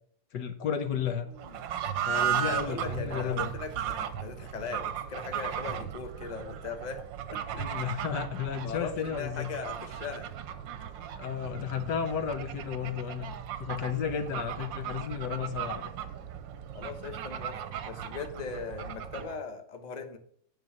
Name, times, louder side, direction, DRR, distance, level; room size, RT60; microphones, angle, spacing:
voice 1, 0.3-1.3 2.0-3.5 7.6-9.5 11.2-13.3 13.6-15.9, left 7 dB, 70° left, 8 dB, 1.4 m, -33 dB
voice 2, 1.3-1.6 2.4-7.0 7.3-7.6 8.6-10.3 15.3-15.5 16.7-20.2, left 4 dB, 25° left, 5 dB, 1.1 m, -39 dB
Fowl / Bird, 1.3-19.4, right 9 dB, 85° right, 1.5 m, -36 dB
9.2 x 5.7 x 7.4 m, 0.62 s
omnidirectional pair, 2.0 m